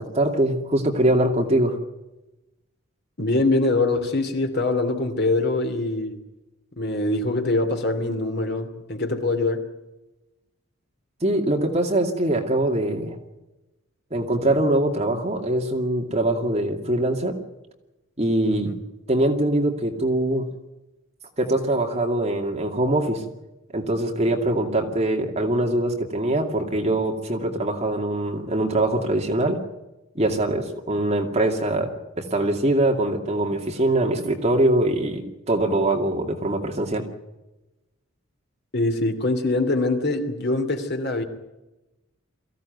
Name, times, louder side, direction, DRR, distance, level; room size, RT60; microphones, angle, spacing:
voice 1, 0.0-1.8 11.2-13.2 14.1-17.4 18.2-18.7 19.1-20.5 21.4-23.2 23.7-29.6 30.1-37.0, right 1 dB, 30° right, 2.4 m, -23 dB
voice 2, 3.2-6.2 6.7-9.7 18.5-18.8 38.7-41.2, left 2 dB, 50° left, 2.9 m, -23 dB
23.0 x 16.0 x 9.4 m
head